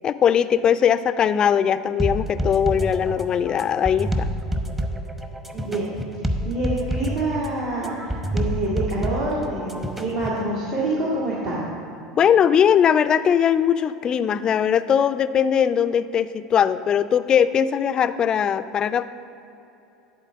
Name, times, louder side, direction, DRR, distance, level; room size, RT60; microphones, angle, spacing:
voice 1, 0.0-4.3 12.1-19.1, left 8 dB, 35° left, 13 dB, 0.4 m, -20 dB
sound 1, 2.0-10.4, equal, 10° right, 0.8 m, -28 dB
voice 2, 5.5-5.9 6.4-11.6, right 2 dB, 65° right, -9 dB, 2.0 m, -26 dB
11.5 x 4.2 x 7.1 m, 2.9 s
figure-of-eight pair, 75°, 2 cm